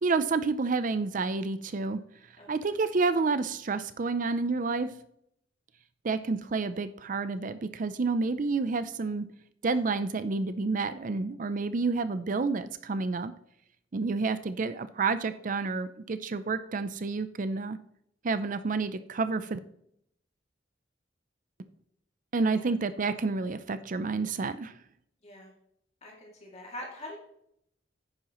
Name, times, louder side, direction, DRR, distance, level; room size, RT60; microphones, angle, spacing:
voice 1, 0.0-2.0 2.5-4.9 6.0-9.3 9.6-13.3 13.9-17.8 18.2-19.6 22.3-24.7, right 4 dB, 45° right, 12 dB, 0.5 m, -29 dB
voice 2, 25.2-25.5 26.0-27.2, left 1 dB, 35° left, -2 dB, 2.5 m, -43 dB
10.5 x 9.5 x 3.1 m, 0.72 s
head